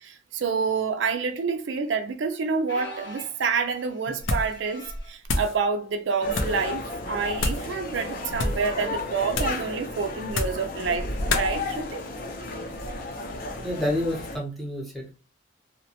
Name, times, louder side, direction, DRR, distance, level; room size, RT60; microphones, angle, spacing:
voice 1, 0.0-12.0, right 5 dB, 70° right, 0.4 m, -28 dB
sound 1, 2.7-5.2 5.9-6.2 6.5-6.6 7.5-7.7 9.4-9.5, equal, 70° left, 0.9 m, -44 dB
sound 2, 4.2-4.6 4.9-5.6 6.3-6.6 7.4-7.7 8.3-8.7 9.3-9.7 10.3-10.7 11.3-11.5, left 2 dB, 90° left, 0.6 m, -28 dB
sound 3, 6.2-14.4, left 1 dB, 50° left, 0.6 m, -33 dB
voice 2, 13.6-15.2, left 1 dB, ahead, 0.7 m, -29 dB
2.8 x 2.2 x 2.8 m
head